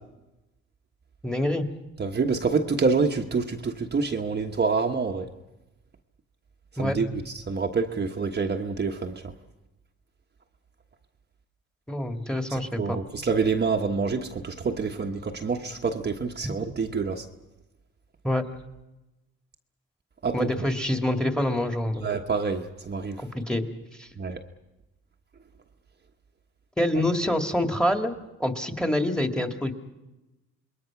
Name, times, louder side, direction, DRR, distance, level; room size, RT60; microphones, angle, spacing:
voice 1, 1.2-1.7 6.8-7.0 11.9-13.0 18.2-18.4 20.3-22.1 23.2-23.6 24.0-24.1 26.8-28.1 28.4-29.7, left 1 dB, 5° left, 6 dB, 2.1 m, -26 dB
voice 2, 2.0-5.3 6.8-9.2 12.5-17.2 20.2-20.5 22.0-23.2 24.2-24.4, right 4 dB, 35° right, 3 dB, 1.2 m, -27 dB
27.0 x 21.5 x 6.0 m, 1.0 s
cardioid pair, 90°, 30 cm